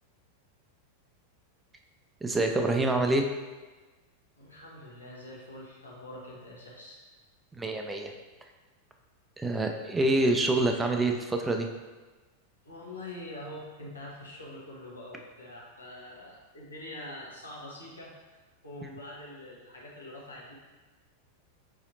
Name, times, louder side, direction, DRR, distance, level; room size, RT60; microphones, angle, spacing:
voice 1, 2.2-3.2 7.5-8.1 9.4-11.7, right 2 dB, 10° right, 3 dB, 0.3 m, -26 dB
voice 2, 4.4-7.0 12.6-20.5, left 1 dB, 80° left, -5 dB, 1.0 m, -44 dB
4.7 x 2.8 x 2.6 m, 1.3 s
figure-of-eight pair, 90°, 0 cm